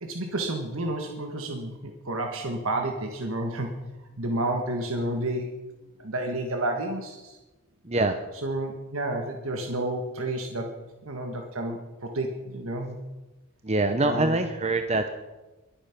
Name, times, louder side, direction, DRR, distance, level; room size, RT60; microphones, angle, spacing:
voice 1, 0.0-3.7 4.2-5.5 6.0-7.4 8.4-10.7 11.0-13.0 14.0-14.4, right 1 dB, 70° right, 3 dB, 1.6 m, -30 dB
voice 2, 7.8-8.2 13.6-15.1, right 2 dB, 30° right, 7 dB, 0.8 m, -24 dB
22.0 x 8.9 x 6.0 m, 1.1 s
head